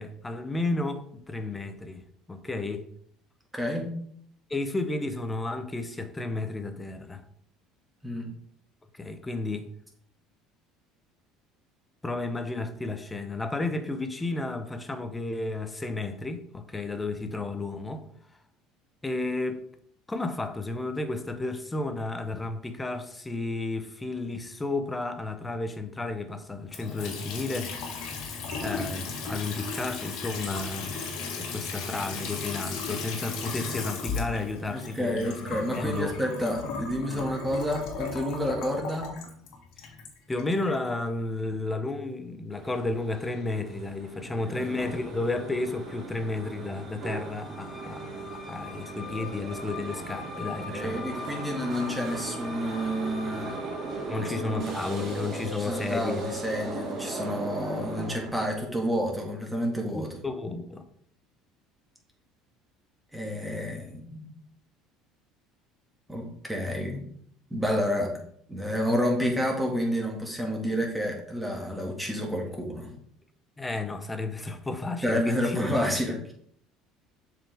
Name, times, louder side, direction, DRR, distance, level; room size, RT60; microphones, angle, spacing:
voice 1, 0.0-2.0 2.3-2.8 4.5-7.2 8.9-9.7 12.0-18.0 19.0-19.6 20.1-28.1 28.6-36.1 39.8-39.9 40.3-51.0 54.1-56.3 59.9-60.9 73.6-75.6, left 2 dB, 15° left, 0.8 m, -32 dB
voice 2, 3.5-3.9 8.0-8.3 34.7-39.1 44.5-44.7 50.4-53.5 54.2-54.7 55.5-60.1 63.1-64.3 66.1-67.0 67.5-68.1 68.5-72.9 75.0-76.3, equal, 5° right, 1.9 m, -29 dB
Water tap faucet / Sink (filling or washing) / Trickle dribble, 26.7-40.8, left 4 dB, 70° left, 1.7 m, -36 dB
sound 1, 42.5-58.3, right 2 dB, 50° right, 2.8 m, -37 dB
7.1 x 4.8 x 3.6 m
supercardioid pair, 105°, 0 cm